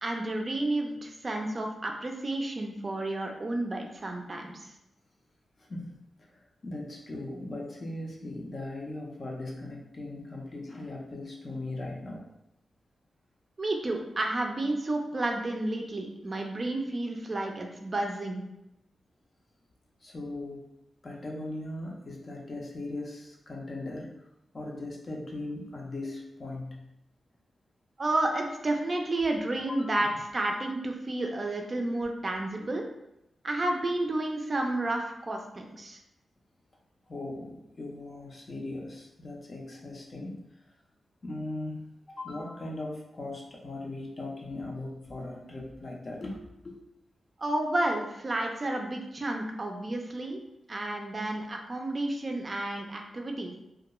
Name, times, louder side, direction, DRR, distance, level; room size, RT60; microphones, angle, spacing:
voice 1, 0.0-4.7 13.6-18.4 28.0-32.8 33.4-36.0 47.4-50.4 50.7-53.5, right 2 dB, 40° right, 2 dB, 0.4 m, -31 dB
voice 2, 5.6-12.2 20.0-20.7 21.0-24.2 24.5-26.8 29.6-30.2 37.1-40.4 41.2-46.8, left 2 dB, 45° left, -1 dB, 0.5 m, -39 dB
2.3 x 2.2 x 2.9 m, 0.85 s
cardioid pair, 80°, 0 cm